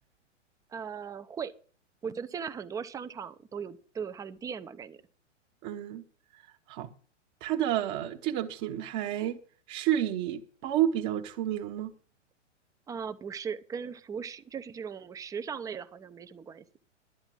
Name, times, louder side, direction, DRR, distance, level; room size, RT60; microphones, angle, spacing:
voice 1, 0.7-1.5 2.0-5.0 12.9-16.6, right 6 dB, 10° right, 0.5 m, -38 dB
voice 2, 5.6-6.0 6.7-6.9 7.4-9.4 9.7-11.9, right 11 dB, 35° right, 1.0 m, -30 dB
12.5 x 8.8 x 6.0 m
hypercardioid pair, 115°, 37 cm